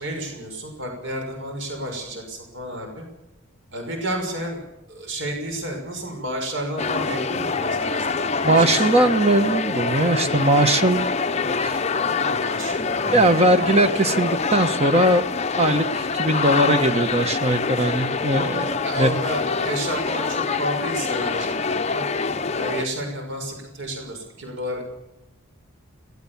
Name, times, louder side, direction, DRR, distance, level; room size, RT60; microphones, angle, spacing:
voice 1, 0.0-3.0 3.7-4.6 4.9-9.1 11.6-11.7 12.2-13.2 18.8-22.1 22.6-24.9, right 1 dB, 60° right, 3 dB, 6.1 m, -31 dB
sound 1, 6.8-22.9, left 4 dB, 30° left, 0.7 m, -25 dB
voice 2, 8.4-11.1 11.6-11.8 13.1-15.2 15.6-19.1, right 1 dB, 30° right, 8 dB, 1.3 m, -20 dB
22.0 x 18.0 x 7.3 m, 0.96 s
head